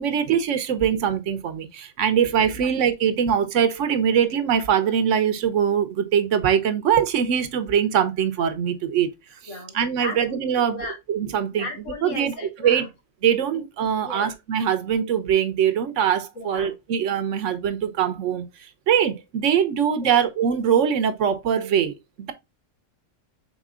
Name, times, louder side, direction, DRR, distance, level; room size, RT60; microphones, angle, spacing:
voice 1, 0.0-9.1 9.7-10.8 11.1-11.7 12.0-12.3 12.6-12.9 13.2-18.4 18.9-22.3, right 8 dB, 80° right, 1.1 m, -22 dB
voice 2, 9.5-11.0 11.6-12.9 13.5-13.6 14.0-14.3 16.4-16.7 20.0-20.2, left 2 dB, 80° left, 2.1 m, -36 dB
5.2 x 3.7 x 2.3 m
omnidirectional pair, 1.3 m